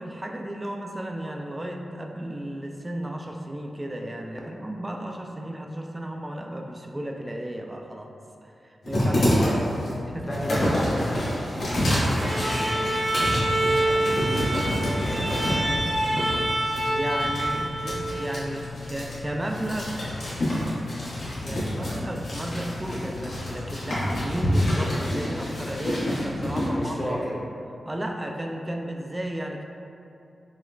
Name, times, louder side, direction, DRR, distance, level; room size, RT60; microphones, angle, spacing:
voice 1, 0.0-8.1 8.4-9.5 10.1-10.4 16.8-20.2 21.4-27.3 27.8-29.6, right 1 dB, 20° right, 2 dB, 0.4 m, -34 dB
sound 1, 8.8-26.7, left 1 dB, 85° left, 1.1 m, -28 dB
voice 2, 9.3-9.7 10.3-13.2 13.8-15.8 21.4-21.8 26.7-27.3, equal, 35° left, -4 dB, 0.8 m, -33 dB
Bowed string instrument, 12.2-18.5, right 1 dB, 55° right, 1.0 m, -26 dB
6.0 x 2.1 x 2.4 m, 2.7 s
cardioid pair, 55°, 0 cm